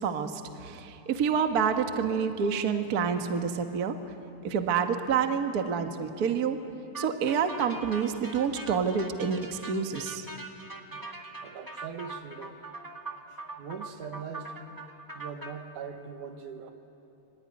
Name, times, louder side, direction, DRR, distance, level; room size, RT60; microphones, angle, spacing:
voice 1, 0.0-4.0 4.4-6.6 7.0-10.2, right 6 dB, 45° right, 6 dB, 1.2 m, -28 dB
sound 1, 6.9-15.5, right 3 dB, 25° right, 0.4 m, -42 dB
voice 2, 10.9-12.6 13.3-14.6 15.1-16.7, right 6 dB, 80° right, 6 dB, 3.0 m, -41 dB
26.0 x 23.5 x 9.8 m, 2.9 s
omnidirectional pair, 3.5 m